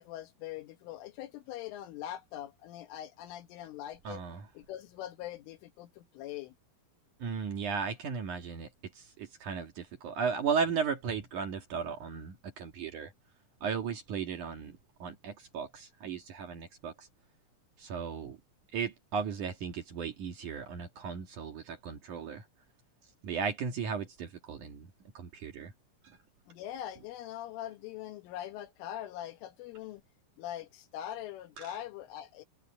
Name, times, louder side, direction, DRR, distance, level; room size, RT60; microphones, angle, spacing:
voice 1, 0.0-4.2 4.6-6.6 26.5-30.0 30.4-32.4, left 12 dB, 75° left, 3.8 m, -42 dB
voice 2, 4.0-4.5 7.2-8.7 8.9-13.1 13.6-17.1 17.8-18.4 18.7-22.5 23.2-24.9 25.1-25.7 26.0-26.2 31.6-31.7, right 6 dB, 55° right, 2.3 m, -36 dB
omnidirectional pair, 5.9 m